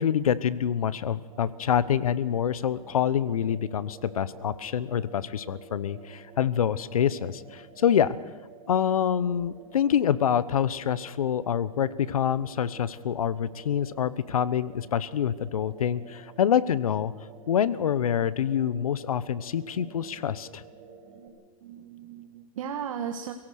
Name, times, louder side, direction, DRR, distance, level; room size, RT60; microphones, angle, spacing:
voice 1, 0.0-8.2 8.7-17.1 17.5-20.6, left 9 dB, 90° left, 17 dB, 1.1 m, -26 dB
sound 1, 1.3-21.3, right 5 dB, 40° right, 6.6 m, -50 dB
voice 2, 19.7-20.3 21.1-21.3 21.6-23.3, right 8 dB, 70° right, 6 dB, 1.7 m, -38 dB
28.0 x 17.0 x 6.6 m, 1.3 s
hypercardioid pair, 135°, 18 cm